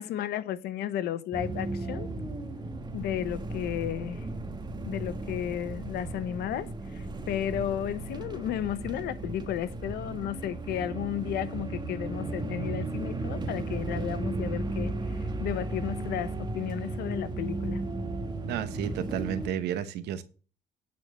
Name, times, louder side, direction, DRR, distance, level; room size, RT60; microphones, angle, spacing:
voice 1, 0.0-2.4 2.9-4.3 4.8-14.9 15.4-17.8, left 11 dB, 75° left, 0.9 m, -33 dB
sound 1, 1.3-19.5, right 2 dB, 25° right, 1.4 m, -35 dB
voice 2, 18.5-20.2, right 10 dB, 80° right, 1.1 m, -32 dB
9.7 x 4.5 x 7.3 m
cardioid pair, 110°, 17 cm